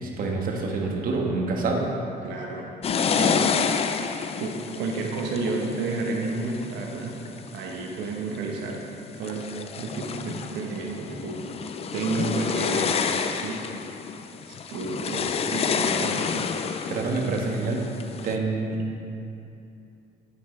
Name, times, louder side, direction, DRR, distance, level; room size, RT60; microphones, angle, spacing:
voice 1, 0.0-1.8 16.9-17.8 18.2-18.8, right 3 dB, 55° right, 0 dB, 1.4 m, -27 dB
voice 2, 2.2-2.7 3.1-4.0 4.4-7.1 7.5-8.9 9.2-9.4 9.8-13.6 14.5-16.3, right 3 dB, 85° right, 0 dB, 1.1 m, -31 dB
sound 1, 2.8-7.6 8.2-8.7 9.1-18.4, left 6 dB, 35° left, 0.4 m, -29 dB
8.7 x 8.6 x 3.2 m, 2.6 s
cardioid pair, 110°, 17 cm